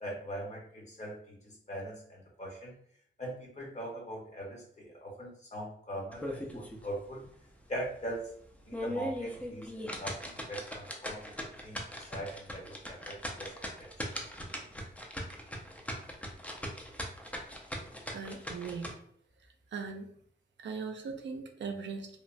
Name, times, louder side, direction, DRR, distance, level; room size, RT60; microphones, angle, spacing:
voice 1, 0.0-2.7 3.2-7.2 7.7-8.3 8.7-13.9, right 1 dB, 35° left, -1 dB, 0.8 m, -41 dB
sound 1, 6.1-6.9 7.2-7.3 7.8-7.9 8.5-18.9, equal, 5° left, 0.4 m, -39 dB
voice 2, 18.1-18.9 19.7-20.1 20.6-22.1, right 5 dB, 70° right, 4 dB, 0.4 m, -39 dB
2.9 x 2.0 x 2.5 m, 0.66 s
wide cardioid pair, 140°, 20 cm